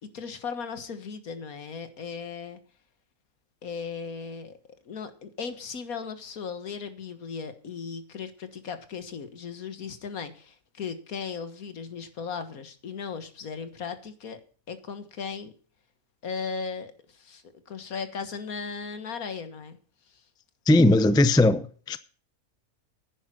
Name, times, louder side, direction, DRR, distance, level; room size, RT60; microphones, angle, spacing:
voice 1, 0.0-2.6 3.6-4.6 4.9-14.4 14.7-15.5 16.2-19.8 20.1-20.2, left 5 dB, 80° left, 1.9 m, -37 dB
voice 2, 20.7-22.0, left 2 dB, 5° left, 0.3 m, -19 dB
10.5 x 9.9 x 6.1 m
omnidirectional pair, 1.5 m